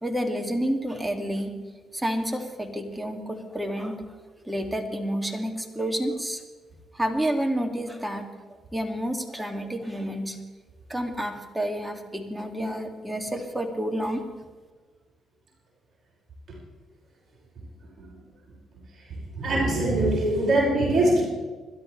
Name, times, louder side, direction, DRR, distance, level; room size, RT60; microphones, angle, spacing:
voice 1, 0.0-1.6 1.9-4.0 4.4-6.4 6.9-8.3 8.7-10.4 10.9-14.2, equal, 10° right, 5 dB, 2.5 m, -29 dB
voice 2, 19.4-21.2, right 1 dB, 50° right, -4 dB, 6.0 m, -22 dB
27.5 x 12.5 x 3.4 m, 1.4 s
hypercardioid pair, 55°, 0 cm